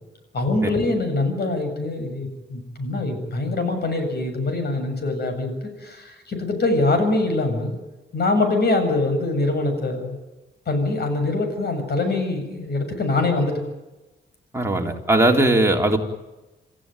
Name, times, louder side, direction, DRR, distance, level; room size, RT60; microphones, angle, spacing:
voice 1, 0.3-7.7 8.1-10.2 10.7-13.7, left 2 dB, 55° left, 7 dB, 7.5 m, -23 dB
voice 2, 14.5-16.0, right 1 dB, 15° right, 1 dB, 3.6 m, -19 dB
28.5 x 15.0 x 9.2 m, 1.1 s
cardioid pair, 90°, 19 cm